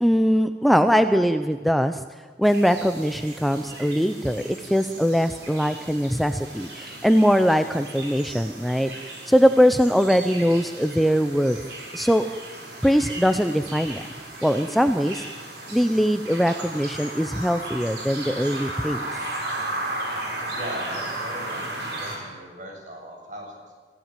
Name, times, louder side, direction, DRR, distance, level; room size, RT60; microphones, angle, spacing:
voice 1, 0.0-2.0 2.4-8.9 9.3-11.6 11.9-12.3 12.8-14.0 14.4-15.2 15.7-19.0, equal, ahead, 9 dB, 0.6 m, -21 dB
sound 1, 2.4-22.2, right 2 dB, 65° right, 6.5 m, -35 dB
voice 2, 20.5-23.7, equal, 45° right, 1 dB, 7.4 m, -39 dB
28.5 x 15.5 x 9.0 m, 1.5 s
head